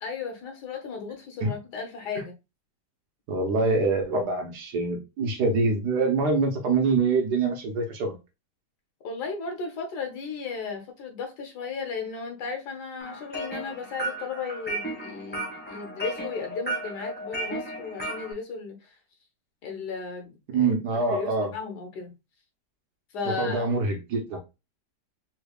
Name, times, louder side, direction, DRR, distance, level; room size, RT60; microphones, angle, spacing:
voice 1, 0.0-2.3 9.0-18.9 19.6-20.7 21.1-22.1 23.1-23.7, left 5 dB, 75° left, 1.5 m, -35 dB
voice 2, 3.3-8.1 20.5-21.5 23.3-24.4, right 3 dB, 70° right, 1.4 m, -25 dB
sound 1, 13.0-18.3, right 1 dB, 10° left, 0.7 m, -34 dB
3.7 x 3.3 x 2.3 m
omnidirectional pair, 1.8 m